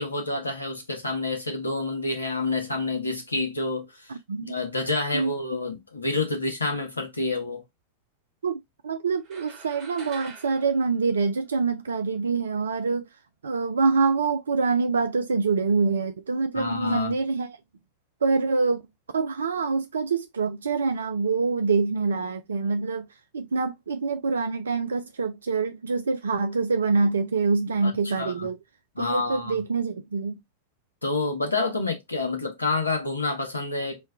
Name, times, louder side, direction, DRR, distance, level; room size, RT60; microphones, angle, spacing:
voice 1, 0.0-3.9 4.4-7.6 16.5-17.1 27.8-28.5 29.0-29.6 31.0-34.1, left 3 dB, 80° left, 0.9 m, -28 dB
voice 2, 4.1-4.6 5.1-5.3 8.4-13.1 13.4-17.6 18.2-18.8 19.1-23.1 23.3-28.6 29.0-30.4, right 4 dB, 70° right, 0.3 m, -25 dB
sound 1, 9.2-11.9, right 4 dB, 40° right, 1.2 m, -46 dB
3.2 x 2.2 x 3.4 m
figure-of-eight pair, 90°, 0 cm